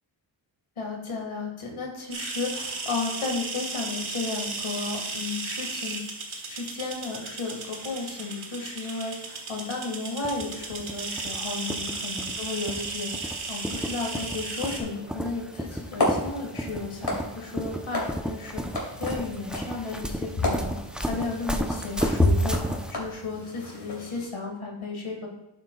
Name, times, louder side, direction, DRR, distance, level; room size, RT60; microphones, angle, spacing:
voice 1, 0.8-6.0 6.5-20.7 21.0-25.3, left 3 dB, 80° left, 0 dB, 1.7 m, -34 dB
sound 1, 2.1-14.8, right 3 dB, 75° right, 1.4 m, -35 dB
sound 2, 10.2-22.9, equal, ahead, 0.5 m, -33 dB
sound 3, 15.6-24.2, left 1 dB, 50° left, 2.9 m, -31 dB
11.5 x 7.6 x 2.2 m, 0.91 s
wide cardioid pair, 110°, 49 cm